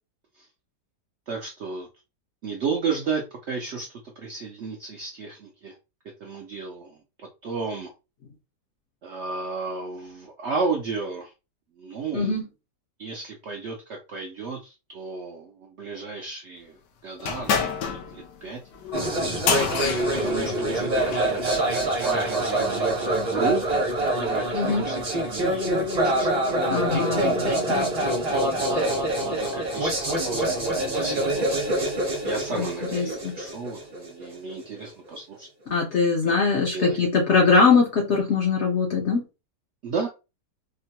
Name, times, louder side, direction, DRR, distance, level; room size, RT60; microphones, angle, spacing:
voice 1, 1.3-1.9 2.4-3.9 4.2-5.8 6.2-7.0 7.4-7.9 9.0-11.3 11.8-12.4 13.0-16.8 17.0-18.6 20.1-23.8 24.2-25.7 26.0-26.6 28.6-31.5 32.2-35.5 36.7-37.0 39.8-40.1, right 4 dB, 65° right, 1 dB, 0.6 m, -33 dB
sound 1, 17.2-21.3, left 6 dB, 90° left, 1.3 m, -29 dB
sound 2, 18.9-34.8, right 1 dB, 35° right, 0.7 m, -25 dB
voice 2, 24.5-24.9 26.7-27.9 32.5-33.3 35.7-39.2, left 4 dB, 60° left, 0 dB, 0.7 m, -22 dB
3.7 x 2.1 x 2.8 m, 0.28 s
omnidirectional pair, 1.8 m